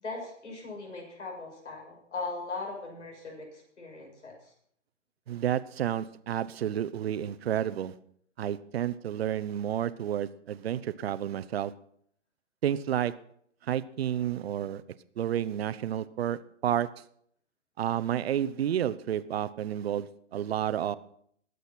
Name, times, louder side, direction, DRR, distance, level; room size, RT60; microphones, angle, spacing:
voice 1, 0.0-4.5, left 3 dB, 80° left, 0 dB, 6.4 m, -39 dB
voice 2, 5.3-7.9 8.4-11.7 12.6-13.1 13.6-14.8 15.2-16.9 17.8-21.0, right 10 dB, 60° right, 14 dB, 0.9 m, -30 dB
21.5 x 8.0 x 4.4 m, 0.64 s
hypercardioid pair, 130°, 36 cm